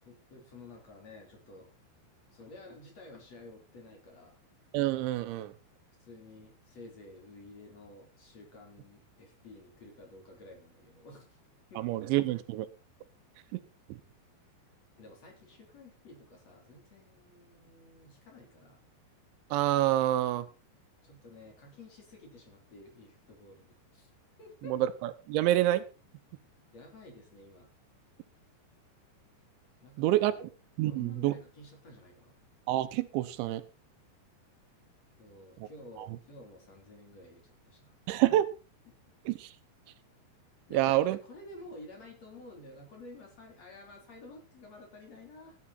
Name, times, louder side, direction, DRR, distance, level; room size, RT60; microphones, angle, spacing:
voice 1, 0.0-1.7 2.3-4.4 6.0-11.4 11.7-12.0 15.0-18.8 21.0-24.1 24.4-24.7 26.7-27.7 29.8-30.5 30.8-32.3 35.2-38.0 40.7-45.6, left 2 dB, 35° left, 1 dB, 4.4 m, -51 dB
voice 2, 4.7-5.5 11.8-12.7 13.5-13.6 13.9-14.0 19.5-20.5 24.6-25.8 30.0-30.3 30.8-31.3 32.7-33.6 35.6-35.7 36.0-36.1 38.1-38.5 39.3-39.5 40.7-41.2, right 14 dB, 80° right, 13 dB, 3.2 m, -27 dB
16.0 x 10.0 x 4.3 m, 0.33 s
omnidirectional pair, 5.3 m